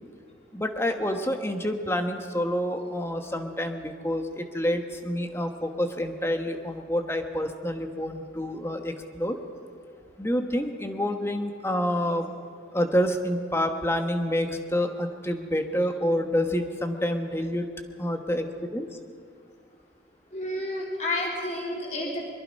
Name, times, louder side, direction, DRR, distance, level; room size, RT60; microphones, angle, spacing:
voice 1, 0.5-9.4 10.2-12.3 12.7-17.7 18.0-18.9, equal, 15° left, 6 dB, 1.2 m, -28 dB
voice 2, 20.3-22.3, left 1 dB, 35° left, -1 dB, 2.9 m, -30 dB
22.5 x 22.5 x 5.4 m, 2.1 s
head